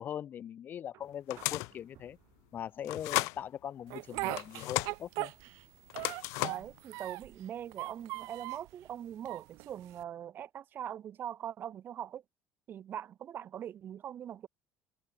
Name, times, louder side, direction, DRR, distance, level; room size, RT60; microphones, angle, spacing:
voice 1, 0.0-2.2 2.5-5.3, left 9 dB, 40° left, 0.8 m, -41 dB
sound 1, 0.9-8.9 10.3-10.4, right 17 dB, 65° right, 7.2 m, -66 dB
sound 2, 1.3-1.8 2.8-3.4 4.4-4.9 5.9-6.7, left 27 dB, 90° left, 0.3 m, -34 dB
Speech, 3.9-5.7 5.9-7.4 7.7-8.7 9.3-10.0, right 25 dB, 85° right, 1.6 m, -39 dB
voice 2, 6.4-12.2 12.7-14.5, right 10 dB, 40° right, 1.0 m, -42 dB
cardioid pair, 140°, 5 cm